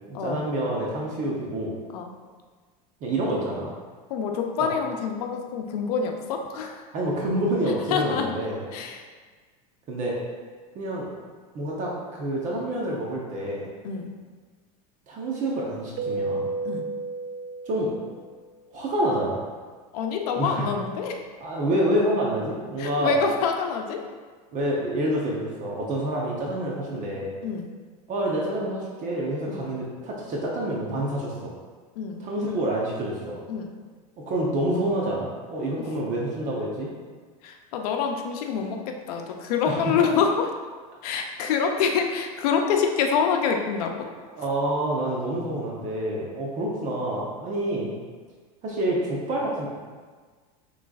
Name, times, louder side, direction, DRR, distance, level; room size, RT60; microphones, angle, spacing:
voice 1, 0.1-1.7 3.0-3.7 4.6-4.7 6.9-8.6 9.9-10.2 10.7-11.1 11.5-13.7 15.1-16.5 17.7-17.9 18.7-19.4 20.4-20.6 21.4-23.2 24.5-27.3 28.1-31.5 32.2-33.4 34.2-36.9 39.6-39.9 44.3-47.9 48.6-49.7, right 1 dB, 40° right, -3 dB, 0.9 m, -27 dB
voice 2, 4.1-6.8 7.9-8.3 8.7-9.0 13.8-14.1 16.6-16.8 19.9-21.2 22.8-24.0 27.4-27.6 29.5-29.7 32.0-32.2 33.5-33.7 37.4-40.3 41.0-43.9, left 6 dB, 75° left, 3 dB, 0.6 m, -26 dB
Keyboard (musical), 16.0-18.5, right 3 dB, 75° right, 0.4 m, -32 dB
6.0 x 3.2 x 2.4 m, 1.5 s
supercardioid pair, 125°, 20 cm